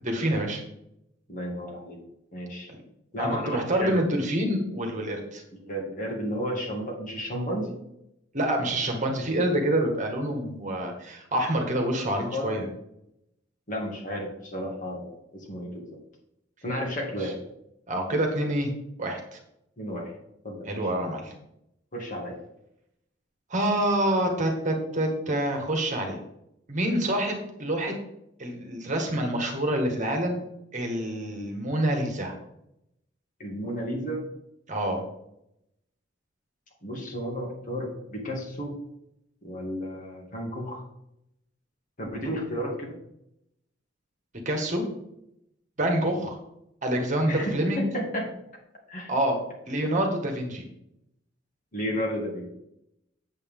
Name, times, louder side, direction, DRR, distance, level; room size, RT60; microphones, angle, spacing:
voice 1, 0.0-0.6 3.2-5.4 8.3-12.7 17.2-17.3 17.9-18.7 19.0-19.2 20.6-21.3 23.5-26.2 26.7-27.9 28.4-30.4 30.7-32.3 34.7-35.0 44.4-44.8 45.8-46.4 46.8-47.9 49.1-49.4 49.7-50.6, right 1 dB, 40° right, 2 dB, 1.6 m, -27 dB
voice 2, 1.3-2.0 2.3-2.7 3.1-4.0 5.6-7.8 12.2-12.5 13.7-15.8 16.6-17.4 19.8-20.1 20.4-20.7 21.9-22.3 33.4-34.2 36.8-38.7 39.4-40.8 42.0-42.9 47.2-48.3 48.9-49.1 51.7-52.5, equal, 45° left, -1 dB, 2.4 m, -32 dB
8.3 x 7.8 x 3.7 m, 0.81 s
head